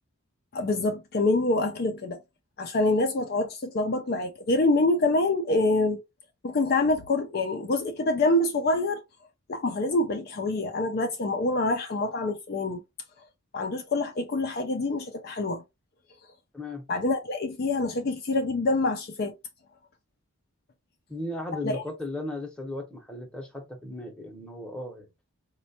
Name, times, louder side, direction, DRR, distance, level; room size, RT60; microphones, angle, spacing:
voice 1, 0.5-2.2 2.6-6.0 6.4-9.0 9.5-12.8 13.5-15.6 16.9-19.3 21.6-21.8, left 2 dB, 45° left, 0.4 m, -26 dB
voice 2, 21.1-25.1, left 1 dB, 5° left, 0.7 m, -36 dB
4.2 x 2.2 x 2.7 m
head